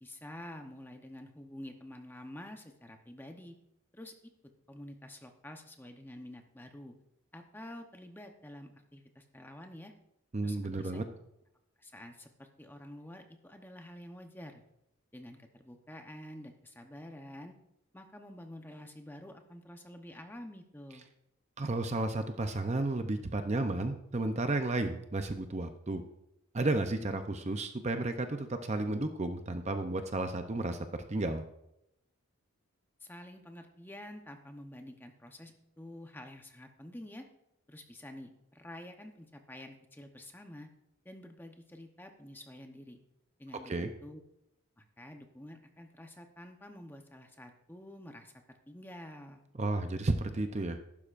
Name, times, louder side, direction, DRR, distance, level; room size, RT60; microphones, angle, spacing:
voice 1, 0.0-3.6 3.9-4.1 4.7-6.9 7.3-9.9 10.4-11.0 11.8-14.6 15.1-17.5 17.9-21.1 33.0-37.3 37.7-40.7 41.0-43.0 43.4-44.2 44.8-48.4 48.7-49.4, left 1 dB, 10° left, 4 dB, 0.9 m, -48 dB
voice 2, 10.3-11.1 21.6-26.0 26.5-30.8 31.1-31.4 43.7-43.9 49.6-50.8, right 2 dB, 30° right, 7 dB, 0.6 m, -32 dB
14.5 x 12.0 x 2.5 m, 0.82 s
head